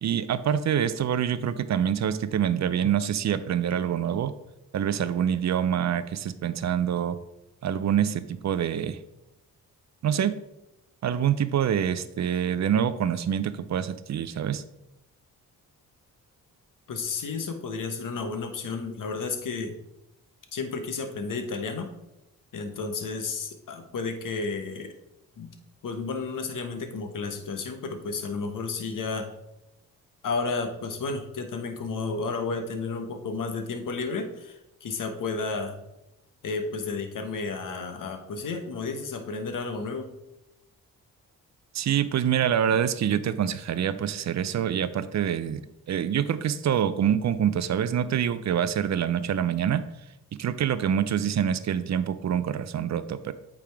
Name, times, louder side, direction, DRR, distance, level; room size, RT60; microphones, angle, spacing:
voice 1, 0.0-4.3 4.7-7.2 7.6-9.0 10.0-10.4 11.0-14.6 41.7-45.6 45.9-49.8 50.4-53.3, right 9 dB, 50° right, 14 dB, 0.5 m, -26 dB
voice 2, 16.9-19.7 20.5-21.9 22.5-24.9 25.4-25.5 25.8-29.3 30.2-35.8 36.4-40.1, left 4 dB, 55° left, 6 dB, 1.1 m, -32 dB
8.4 x 3.5 x 3.4 m, 0.87 s
supercardioid pair, 55°, 37 cm